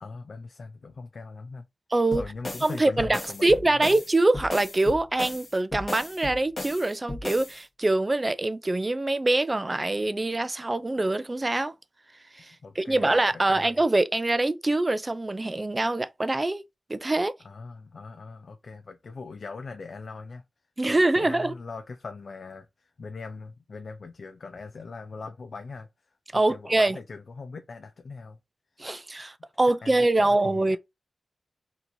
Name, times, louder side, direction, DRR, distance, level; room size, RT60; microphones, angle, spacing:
voice 1, 0.0-1.7 2.1-4.0 12.6-13.8 17.4-20.4 20.9-28.4 28.8-28.9 29.8-30.8, left 4 dB, 60° left, 0.4 m, -41 dB
voice 2, 1.9-2.2 2.6-11.7 12.3-16.6 16.9-17.3 20.8-21.5 26.3-27.0 28.8-30.8, right 2 dB, 25° right, 0.3 m, -24 dB
sound 1, 2.1-7.6, left 2 dB, 35° left, 1.1 m, -36 dB
4.3 x 2.8 x 2.6 m
wide cardioid pair, 105°, 0 cm